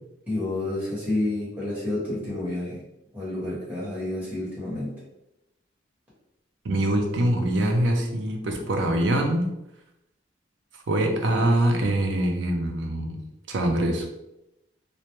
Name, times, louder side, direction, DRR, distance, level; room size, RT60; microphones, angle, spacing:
voice 1, 0.3-2.8 3.1-4.9, left 1 dB, 10° right, -9 dB, 1.0 m, -29 dB
voice 2, 6.6-9.4 10.9-13.2 13.5-14.1, right 1 dB, 75° right, 3 dB, 0.5 m, -24 dB
2.2 x 2.1 x 2.9 m, 0.89 s
head